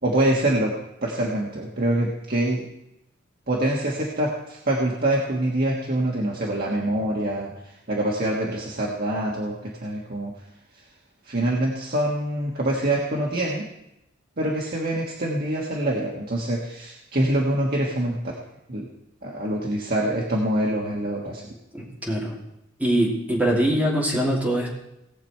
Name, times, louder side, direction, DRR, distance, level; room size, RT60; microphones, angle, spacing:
voice 1, 0.0-0.7 1.0-2.7 3.5-10.3 11.2-13.6 14.4-18.3 18.7-18.9 19.2-21.5, right 1 dB, 50° right, -3 dB, 1.6 m, -25 dB
voice 2, 21.7-22.4 22.8-24.7, right 1 dB, 10° right, -4 dB, 3.1 m, -23 dB
18.5 x 7.1 x 4.5 m, 0.85 s
head